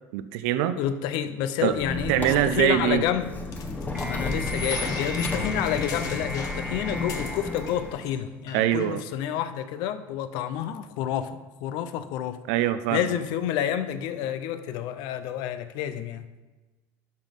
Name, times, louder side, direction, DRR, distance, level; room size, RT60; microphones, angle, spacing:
voice 1, 0.1-0.8 1.6-1.8 2.1-3.0 8.5-9.0 12.5-13.0, right 12 dB, 90° right, 12 dB, 0.4 m, -23 dB
voice 2, 0.8-3.3 4.1-12.4 12.9-16.3, left 10 dB, 75° left, 12 dB, 0.6 m, -29 dB
Squeak, 1.7-8.1, left 2 dB, 20° left, 1.0 m, -33 dB
sound 1, 3.5-7.7 8.0-8.2 8.5-8.9, left 5 dB, 50° left, 1.1 m, -39 dB
sound 2, 3.9-8.4, right 1 dB, 10° right, 0.7 m, -37 dB
12.0 x 4.1 x 5.2 m, 1.2 s
cardioid pair, 135°, 8 cm